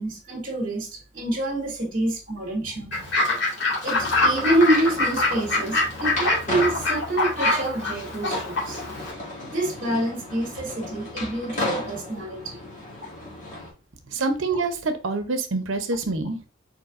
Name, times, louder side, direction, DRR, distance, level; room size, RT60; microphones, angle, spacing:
voice 1, 0.0-2.9 3.8-8.8 9.4-12.6, right 1 dB, 45° right, 1.7 m, -27 dB
Fowl / Bird, 2.9-9.1, left 2 dB, 60° left, 2.1 m, -25 dB
sound 1, 3.9-13.7, left 1 dB, 40° left, 2.1 m, -35 dB
voice 2, 14.1-16.5, right 3 dB, 75° right, 0.8 m, -26 dB
4.5 x 4.5 x 2.6 m
head